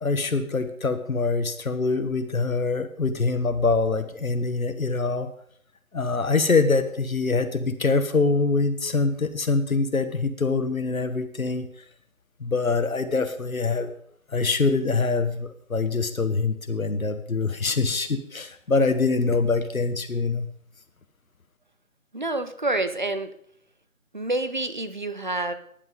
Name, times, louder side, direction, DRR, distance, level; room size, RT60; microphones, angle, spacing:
voice 1, 0.0-5.3 5.9-11.7 12.4-13.9 14.3-20.5, left 3 dB, 75° left, 9 dB, 1.4 m, -24 dB
voice 2, 22.1-23.3 24.1-25.5, right 2 dB, 35° right, 10 dB, 0.8 m, -28 dB
17.5 x 10.5 x 3.9 m, 0.66 s
figure-of-eight pair, 170°, 42 cm